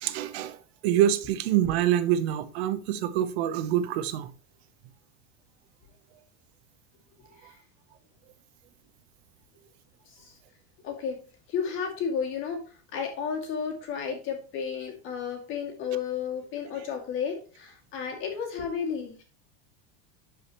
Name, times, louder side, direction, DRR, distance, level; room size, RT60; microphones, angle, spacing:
voice 1, 0.0-0.6 0.8-4.3, right 11 dB, 85° right, 0.9 m, -25 dB
voice 2, 10.8-11.2 11.5-12.6 12.9-19.2, left 7 dB, 40° left, 2.4 m, -32 dB
12.0 x 5.0 x 3.0 m
cardioid pair, 165°, 31 cm